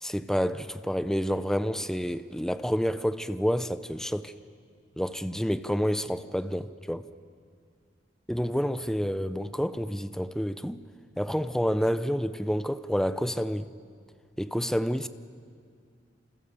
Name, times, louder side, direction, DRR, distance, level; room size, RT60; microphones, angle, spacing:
voice 1, 0.0-4.3 5.0-7.1 8.3-10.8 11.2-13.7 14.4-15.1, equal, 5° left, 0.6 m, -29 dB
30.0 x 27.0 x 7.0 m
head